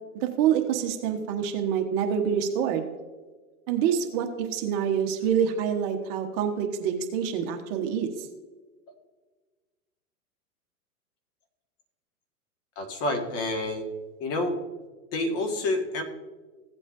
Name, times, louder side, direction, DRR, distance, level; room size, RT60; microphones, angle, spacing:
voice 1, 0.2-2.9 3.7-8.3, right 8 dB, 40° right, 4 dB, 1.2 m, -26 dB
voice 2, 12.7-13.8 14.2-14.6 15.1-16.0, left 2 dB, 30° left, 4 dB, 1.7 m, -28 dB
16.0 x 8.3 x 2.6 m, 1.4 s
hypercardioid pair, 125°, 45 cm